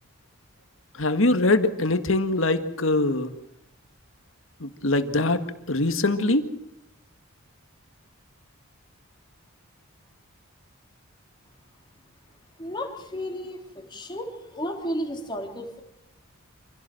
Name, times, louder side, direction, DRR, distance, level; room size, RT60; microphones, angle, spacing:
voice 1, 1.0-3.3 4.6-5.4 5.7-6.5, left 2 dB, 65° left, 9 dB, 1.8 m, -23 dB
voice 2, 12.6-15.8, equal, 20° left, 2 dB, 3.4 m, -33 dB
26.5 x 16.5 x 7.7 m, 0.82 s
head